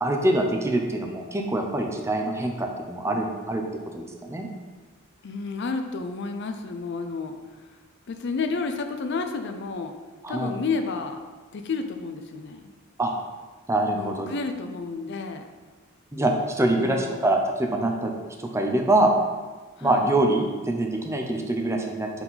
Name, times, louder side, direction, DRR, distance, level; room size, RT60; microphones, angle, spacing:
voice 1, 0.0-3.6 3.9-4.5 10.2-10.5 13.0-13.1 13.7-14.3 16.1-18.1 18.4-19.1 19.8-22.1, right 1 dB, 15° right, 2 dB, 0.5 m, -24 dB
voice 2, 5.2-7.3 8.1-9.9 10.3-11.2 11.5-12.7 13.9-15.5 16.8-17.3 19.8-20.0, left 4 dB, 55° left, 7 dB, 0.5 m, -31 dB
5.5 x 4.5 x 4.0 m, 1.3 s
head